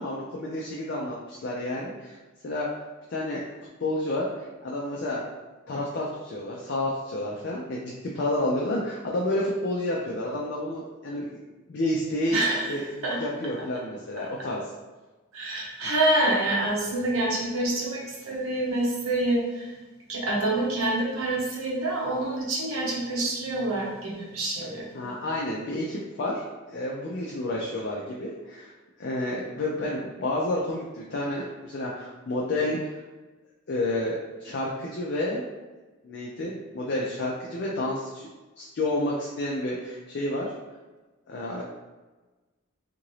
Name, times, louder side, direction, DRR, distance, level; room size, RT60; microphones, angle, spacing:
voice 1, 0.0-2.2 2.4-2.8 3.1-3.5 3.8-5.2 5.7-11.4 11.7-14.6 15.8-15.9 24.9-28.7 29.0-32.9 33.7-35.5 36.0-40.5 41.3-41.6, left 1 dB, 55° left, -4 dB, 0.4 m, -30 dB
voice 2, 12.3-12.7 13.0-13.2 15.3-19.7 20.1-25.1, right 2 dB, 80° right, -4 dB, 0.9 m, -27 dB
2.8 x 2.5 x 3.1 m, 1.2 s
head